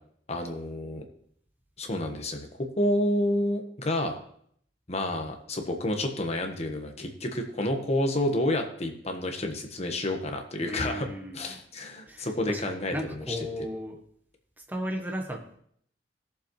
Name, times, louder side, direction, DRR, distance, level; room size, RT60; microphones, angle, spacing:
voice 1, 0.3-1.0 1.8-4.2 4.9-11.1 11.3-13.2, left 1 dB, 35° left, 4 dB, 1.3 m, -29 dB
voice 2, 10.6-11.6 12.1-14.0 14.7-15.6, equal, 10° right, 2 dB, 1.3 m, -35 dB
17.5 x 7.1 x 3.2 m, 0.65 s
head